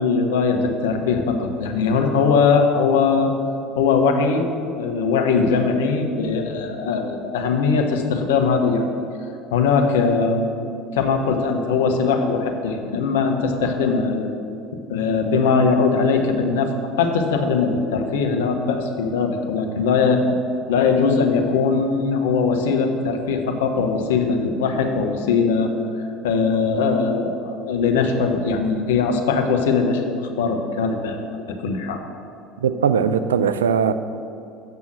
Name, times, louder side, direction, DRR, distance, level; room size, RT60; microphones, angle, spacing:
voice 1, 0.0-3.3 3.7-4.5 4.8-8.8 9.5-10.5 10.9-14.3 14.9-20.2 20.7-32.0, left 5 dB, 75° left, 4 dB, 0.9 m, -20 dB
voice 2, 32.6-33.9, right 7 dB, 85° right, 11 dB, 0.4 m, -19 dB
7.8 x 5.6 x 7.4 m, 2.6 s
hypercardioid pair, 70°, 0 cm